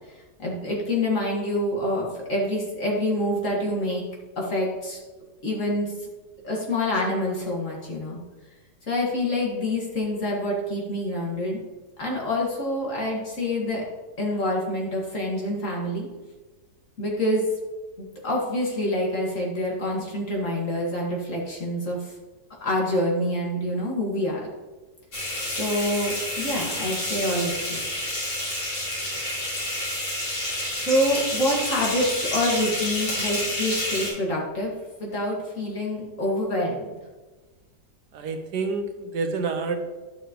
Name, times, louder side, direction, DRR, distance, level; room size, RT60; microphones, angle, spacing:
voice 1, 0.4-4.0 4.4-5.0 5.4-6.1 6.4-8.2 8.9-11.6 12.0-13.8 14.2-16.1 17.0-17.4 18.0-22.1 22.6-24.4 25.4-27.8 30.8-34.7 35.0-36.9, left 1 dB, 45° left, -3 dB, 2.3 m, -26 dB
sound 1, 25.1-34.1, left 1 dB, 85° left, 3.8 m, -29 dB
voice 2, 38.1-39.8, right 4 dB, 70° right, 6 dB, 1.4 m, -28 dB
11.5 x 6.5 x 3.1 m, 1.3 s
omnidirectional pair, 1.9 m